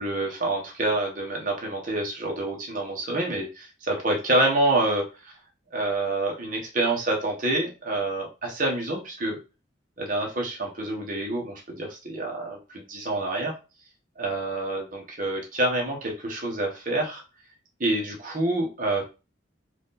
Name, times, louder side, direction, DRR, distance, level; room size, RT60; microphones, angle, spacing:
voice 1, 0.0-5.3 5.7-9.4 10.0-13.5 14.2-17.2 17.8-19.0, right 2 dB, 45° right, 0 dB, 1.4 m, -27 dB
4.9 x 2.7 x 4.1 m, 0.30 s
head